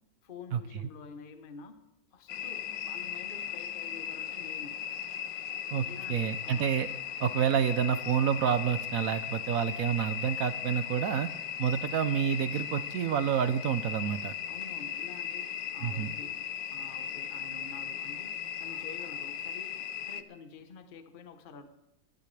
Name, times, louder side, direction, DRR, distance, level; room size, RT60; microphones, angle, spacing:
voice 1, 0.2-1.8 2.1-4.8 5.8-6.8 14.5-16.4 16.7-18.3 18.6-21.7, left 5 dB, 35° left, 7 dB, 0.9 m, -49 dB
sound 1, 2.3-20.2, left 9 dB, 75° left, 1.4 m, -37 dB
voice 2, 5.7-6.9 7.2-11.3 11.6-14.3 15.8-16.1, right 8 dB, 70° right, 11 dB, 0.8 m, -28 dB
23.5 x 11.5 x 3.3 m, 0.87 s
omnidirectional pair, 2.1 m